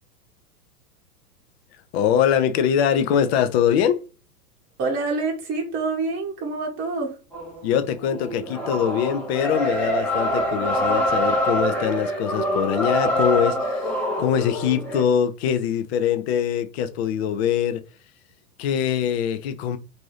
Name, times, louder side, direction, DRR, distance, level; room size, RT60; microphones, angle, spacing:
voice 1, 1.9-4.0 7.6-17.8 18.6-19.8, left 9 dB, 45° left, 0.5 m, -23 dB
voice 2, 4.8-7.1, right 3 dB, 25° right, 0.8 m, -26 dB
sound 1, 7.3-7.6 8.0-15.0, equal, 5° left, 0.7 m, -25 dB
2.6 x 2.6 x 3.2 m
figure-of-eight pair, 100°, 46 cm